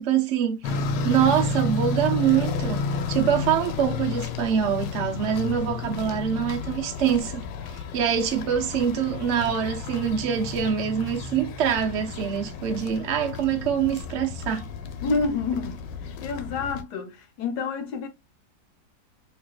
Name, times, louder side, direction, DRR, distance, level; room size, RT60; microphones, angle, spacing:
voice 1, 0.0-2.8 3.1-7.4 7.7-14.7, right 8 dB, 65° right, 0.7 m, -25 dB
sound 1, 0.6-16.8, left 4 dB, 90° left, 1.3 m, -32 dB
voice 2, 15.0-15.9 16.2-18.1, left 4 dB, 70° left, 1.4 m, -28 dB
4.3 x 2.9 x 2.2 m
omnidirectional pair, 1.9 m